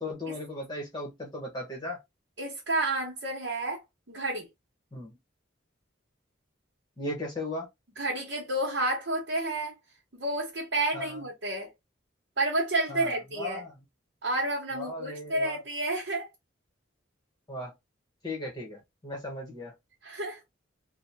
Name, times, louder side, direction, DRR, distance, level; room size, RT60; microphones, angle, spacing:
voice 1, 0.0-2.0 4.9-5.1 7.0-7.7 10.9-11.2 12.9-13.7 14.7-15.6 17.5-17.7 18.2-19.7, left 1 dB, 20° left, 0.9 m, -37 dB
voice 2, 2.4-3.8 4.1-4.5 8.0-9.7 10.1-11.7 12.4-13.6 14.2-16.3 20.0-20.4, right 2 dB, 65° right, 1.0 m, -30 dB
2.8 x 2.1 x 3.2 m
head